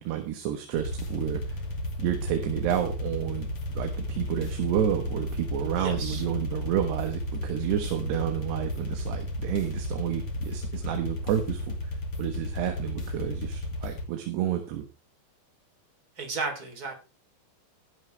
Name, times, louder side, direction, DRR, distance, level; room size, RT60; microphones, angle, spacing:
voice 1, 0.0-1.7 2.0-3.5 3.7-11.9 12.2-14.9, right 11 dB, 70° right, 5 dB, 3.4 m, -30 dB
sound 1, 0.7-14.0, left 1 dB, 35° left, 2.7 m, -33 dB
voice 2, 5.8-6.2 16.2-16.9, right 4 dB, 20° right, 4 dB, 3.6 m, -33 dB
16.0 x 11.5 x 3.4 m, 0.29 s
omnidirectional pair, 5.2 m